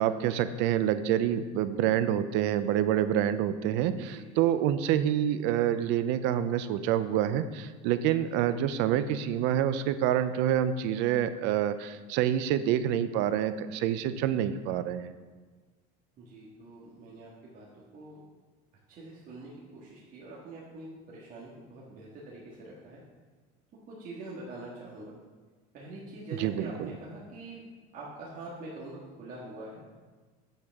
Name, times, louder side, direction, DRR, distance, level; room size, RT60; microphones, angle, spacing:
voice 1, 0.0-15.2 26.3-26.9, right 10 dB, 70° right, 12 dB, 0.5 m, -27 dB
voice 2, 3.9-4.4 16.2-17.6 17.9-18.2 19.0-19.5 19.8-23.0 23.9-25.1 25.7-27.6 27.9-29.8, right 2 dB, 45° right, -5 dB, 1.8 m, -44 dB
8.3 x 7.9 x 3.6 m, 1.4 s
cardioid pair, 130°, 20 cm